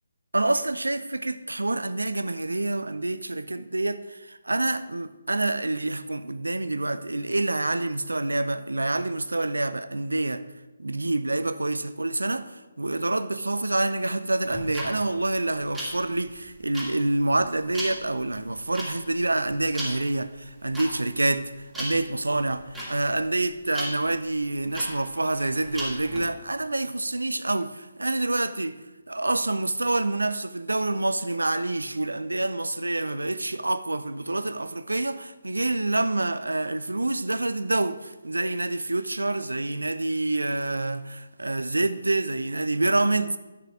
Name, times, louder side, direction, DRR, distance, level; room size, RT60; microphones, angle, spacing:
voice 1, 0.3-10.5 10.8-28.8 29.1-43.3, right 2 dB, 80° right, 0.6 m, -27 dB
sound 1, 14.4-26.2, right 1 dB, 5° right, 2.4 m, -37 dB
10.5 x 5.7 x 4.8 m
figure-of-eight pair, 145°, 0 cm